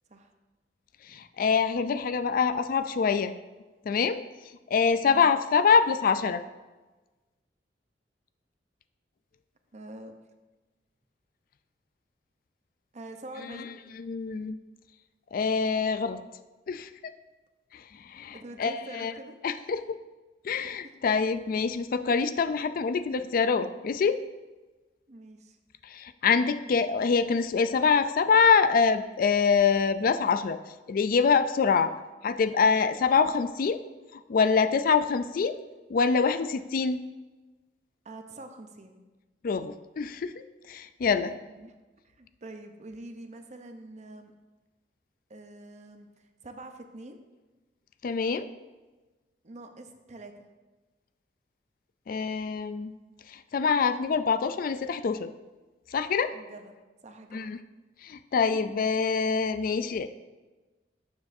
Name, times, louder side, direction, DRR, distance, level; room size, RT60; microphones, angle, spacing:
voice 1, 1.1-3.3 3.9-4.2 4.7-6.4 13.5-14.6 15.3-16.2 16.7-16.9 17.7-19.1 19.4-20.0 20.4-24.2 25.8-30.6 30.9-31.9 32.2-33.8 34.1-35.6 35.9-37.0 39.4-40.3 40.7-41.3 48.0-48.5 52.1-52.9 53.3-55.3 55.9-56.4 57.3-57.6 58.0-60.1, left 5 dB, 50° left, 11 dB, 0.4 m, -25 dB
voice 2, 9.7-10.1 12.9-13.8 18.3-19.3 20.8-21.0 25.1-25.6 31.7-32.0 38.0-39.0 41.5-41.8 42.0-44.3 45.3-46.1 46.4-47.2 49.4-50.5 56.3-56.8 57.0-57.5 58.5-58.6, right 2 dB, 40° right, 6 dB, 0.7 m, -45 dB
12.0 x 7.1 x 2.7 m, 1.2 s
head